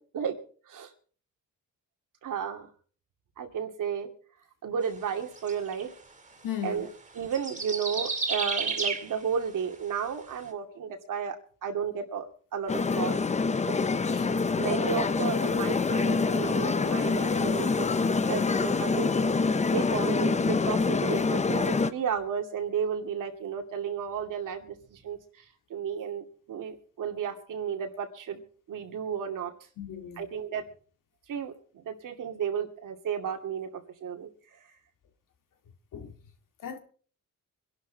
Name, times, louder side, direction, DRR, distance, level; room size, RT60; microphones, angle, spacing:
voice 1, 2.2-2.7 3.4-4.1 4.6-5.9 6.6-6.9 7.1-13.2 13.7-13.8 14.6-17.9 18.3-19.1 19.7-29.5 30.2-30.7 31.3-31.5 31.8-34.3, right 7 dB, 75° right, 2.5 m, -33 dB
sound 1, 5.4-5.8 7.2-9.1 10.1-10.2, right 4 dB, 20° right, 2.5 m, -31 dB
voice 2, 6.4-6.8 29.8-30.2 35.9-36.1 36.6-36.8, left 9 dB, 80° left, 2.2 m, -36 dB
sound 2, 12.7-21.9, left 4 dB, 20° left, 0.6 m, -26 dB
24.5 x 11.5 x 4.0 m
cardioid pair, 140°, 32 cm